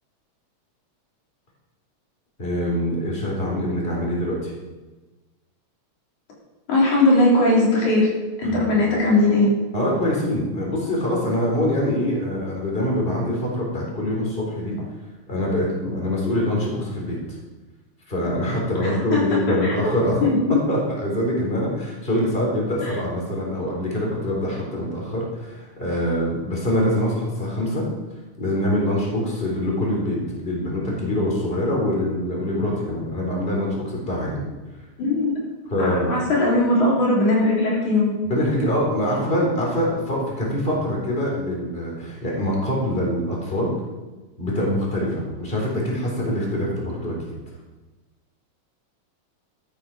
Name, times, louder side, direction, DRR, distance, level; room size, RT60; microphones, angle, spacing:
voice 1, 2.4-4.5 8.4-8.8 9.7-14.8 15.3-17.2 18.1-20.2 20.7-27.9 28.4-34.4 35.7-36.1 38.2-43.7 44.4-47.4, left 1 dB, 20° left, -2 dB, 4.0 m, -24 dB
voice 2, 6.7-8.1 8.4-9.5 18.8-19.9 20.2-20.4 22.8-22.9 35.0-35.4 35.8-38.2, left 2 dB, 80° left, -4 dB, 4.8 m, -19 dB
14.0 x 11.5 x 5.1 m, 1.2 s
omnidirectional pair, 3.4 m